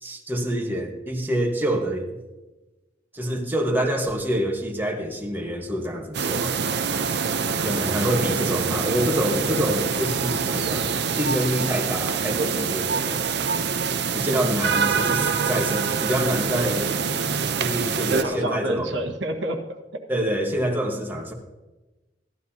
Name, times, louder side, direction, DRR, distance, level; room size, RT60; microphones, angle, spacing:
voice 1, 0.0-2.2 3.1-6.5 7.6-13.2 14.1-16.9 17.6-19.0 20.1-21.3, equal, 10° right, 1 dB, 1.4 m, -26 dB
sound 1, 6.1-18.2, right 6 dB, 65° right, 0.7 m, -25 dB
voice 2, 7.5-8.0 14.2-14.4 18.1-20.0, right 1 dB, 85° right, 3 dB, 1.4 m, -30 dB
15.0 x 12.0 x 2.8 m, 1.1 s
head